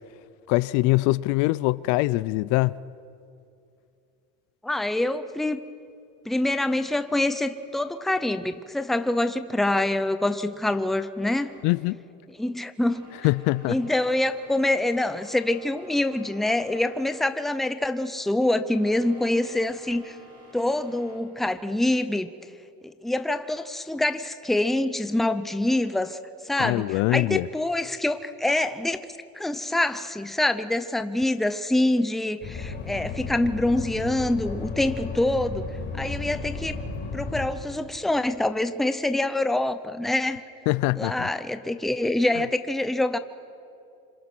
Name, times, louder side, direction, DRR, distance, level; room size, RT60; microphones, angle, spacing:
voice 1, 0.5-2.8 11.6-12.0 13.2-13.8 26.6-27.5 40.7-41.3, left 20 dB, 70° left, 0.5 m, -23 dB
voice 2, 4.6-5.6 6.3-11.5 12.4-13.1 13.7-20.2 20.5-22.3 22.8-26.2 26.4-29.1 29.3-35.7 36.0-36.8 37.1-40.4 41.0-43.2, left 1 dB, ahead, 0.6 m, -25 dB
sound 1, 11.4-21.2, left 1 dB, 30° right, 5.9 m, -50 dB
sound 2, 32.4-37.5, left 4 dB, 35° left, 4.8 m, -34 dB
26.5 x 26.0 x 6.1 m
cardioid pair, 155°, 30 cm